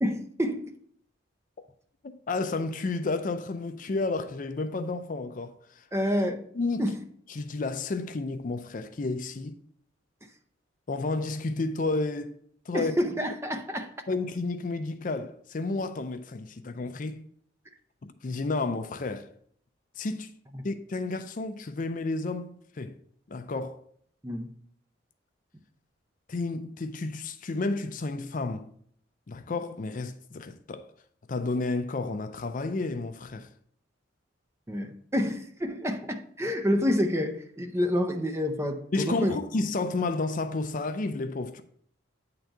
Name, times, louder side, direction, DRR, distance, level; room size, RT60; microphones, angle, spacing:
voice 1, 0.0-0.6 5.9-6.4 6.8-7.0 12.7-13.9 20.5-20.7 24.2-24.5 34.7-39.4, equal, 15° right, 0.5 m, -28 dB
voice 2, 2.0-5.8 6.5-6.9 7.3-9.6 10.9-12.4 12.7-13.0 14.1-17.3 18.0-19.3 20.0-20.3 20.6-23.0 23.3-23.8 26.3-28.7 29.3-30.9 31.3-33.5 38.9-41.6, left 3 dB, 40° left, 0.4 m, -31 dB
9.1 x 3.9 x 4.5 m
head